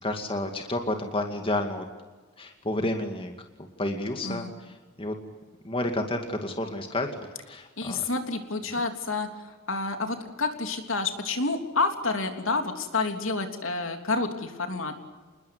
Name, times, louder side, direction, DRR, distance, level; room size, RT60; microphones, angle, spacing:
voice 1, 0.0-1.8 2.4-3.3 3.8-5.2 5.6-7.1 7.5-8.0 8.7-8.8, left 1 dB, 25° left, 4 dB, 2.2 m, -30 dB
voice 2, 4.2-4.5 7.8-14.9, left 3 dB, 65° left, 5 dB, 3.3 m, -29 dB
28.0 x 21.0 x 9.5 m, 1.3 s
head